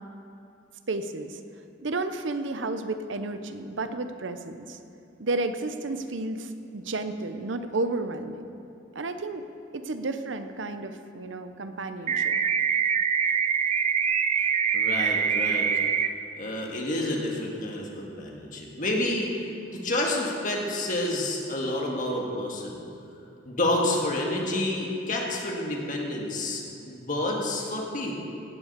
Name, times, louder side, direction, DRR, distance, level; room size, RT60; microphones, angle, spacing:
voice 1, 0.9-1.4 1.8-4.8 5.2-8.4 8.9-9.5 9.7-12.4, right 2 dB, 75° right, 9 dB, 0.8 m, -32 dB
sound 1, 12.1-16.1, right 7 dB, 35° right, 0.4 m, -24 dB
voice 2, 14.4-15.7 16.4-19.4 19.7-22.8 23.5-28.1, left 1 dB, 45° left, -1 dB, 1.9 m, -29 dB
17.0 x 7.3 x 6.7 m, 2.6 s
head